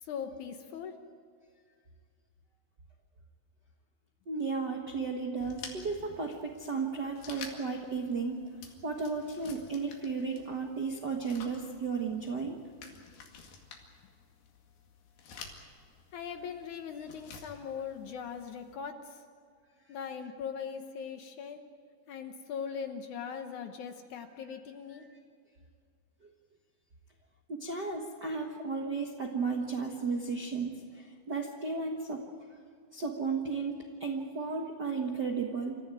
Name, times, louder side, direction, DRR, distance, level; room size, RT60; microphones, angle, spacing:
voice 1, 0.0-1.0 16.1-19.3 19.9-21.6 22.1-25.1, left 7 dB, 65° left, 6 dB, 2.2 m, -40 dB
voice 2, 4.3-8.4 8.8-12.6 27.5-32.2 32.9-35.8, right 4 dB, 55° right, 1 dB, 1.2 m, -34 dB
sound 1, 5.4-18.7, left 5 dB, 90° left, 4.1 m, -51 dB
27.0 x 14.5 x 9.1 m, 2.1 s
omnidirectional pair, 4.3 m